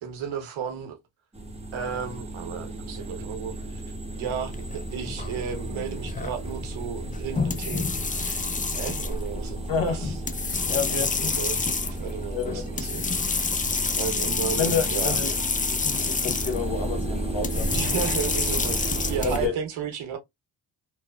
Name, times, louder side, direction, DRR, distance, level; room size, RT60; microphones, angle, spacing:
voice 1, 0.0-1.0 1.7-3.8 4.1-10.2 10.5-10.6 10.9-13.5 14.0-15.2 17.7-20.2, right 7 dB, 85° right, 0.9 m, -34 dB
sound 1, 1.3-19.5, right 2 dB, 15° right, 0.7 m, -34 dB
sound 2, 4.5-19.4, left 4 dB, 20° left, 0.4 m, -29 dB
voice 2, 9.7-10.1 10.6-11.3 12.3-12.7 14.6-15.3 15.7-17.7 19.2-19.5, left 5 dB, 65° left, 1.1 m, -29 dB
3.1 x 2.0 x 2.2 m
supercardioid pair, 55°, 47 cm